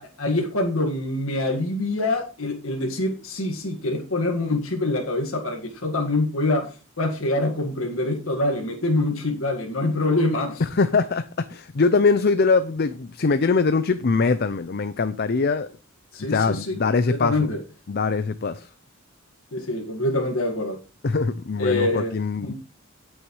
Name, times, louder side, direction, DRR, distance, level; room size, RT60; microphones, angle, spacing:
voice 1, 0.0-10.6 16.1-17.6 19.5-20.8 21.6-22.2 22.4-22.5, left 2 dB, 75° left, 1.8 m, -25 dB
voice 2, 10.6-15.7 16.3-17.5 17.9-18.7 21.0-22.5, left 4 dB, 50° left, 0.5 m, -22 dB
17.5 x 6.3 x 3.1 m
head